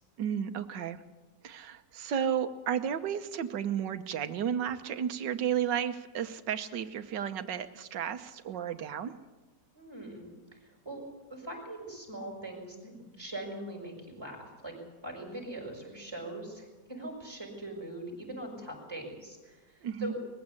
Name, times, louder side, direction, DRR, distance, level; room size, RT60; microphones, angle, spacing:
voice 1, 0.2-1.0 1.4-9.1 19.8-20.1, right 8 dB, 90° right, 10 dB, 1.7 m, -33 dB
voice 2, 9.7-10.3 10.8-11.0 11.3-14.7 15.0-19.6 20.0-20.1, right 1 dB, 15° right, 1 dB, 6.1 m, -41 dB
21.0 x 15.5 x 8.5 m, 1.2 s
omnidirectional pair, 1.9 m